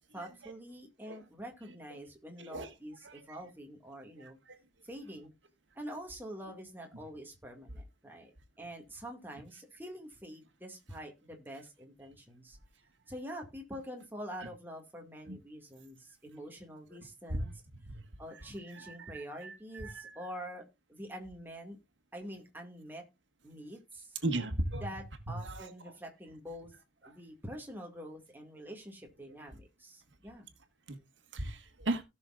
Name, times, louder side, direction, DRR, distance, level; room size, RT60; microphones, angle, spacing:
voice 1, 0.1-4.4 4.8-5.3 5.8-8.3 8.6-12.6 13.1-17.6 18.2-20.6 20.9-21.8 22.1-23.0 23.4-24.1 24.8-26.7 27.0-30.5, equal, 10° right, 2.1 m, -46 dB
voice 2, 19.4-20.2 24.2-24.8 25.4-25.7 30.9-31.0 31.3-32.0, right 1 dB, 80° right, 1.7 m, -35 dB
17.5 x 6.3 x 2.4 m
head